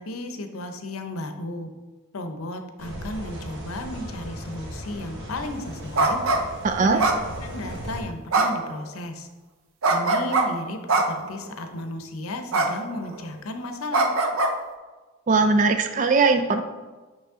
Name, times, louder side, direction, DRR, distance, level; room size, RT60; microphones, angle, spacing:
voice 1, 0.0-1.7 2.1-6.2 6.8-7.1 7.4-9.3 9.9-10.8 11.1-14.1, left 1 dB, 80° left, 6 dB, 0.6 m, -34 dB
sound 1, 2.8-8.0, equal, 60° right, 1.1 m, -37 dB
sound 2, 6.0-6.4 7.0-7.7 8.3-8.7 9.8-10.5 10.9-11.3 12.5-12.7 13.0-13.3 13.9-14.5, right 3 dB, 80° right, 0.6 m, -22 dB
voice 2, 6.6-7.0 15.3-16.6, right 4 dB, 35° right, 7 dB, 0.4 m, -20 dB
8.2 x 3.1 x 3.6 m, 1.2 s
head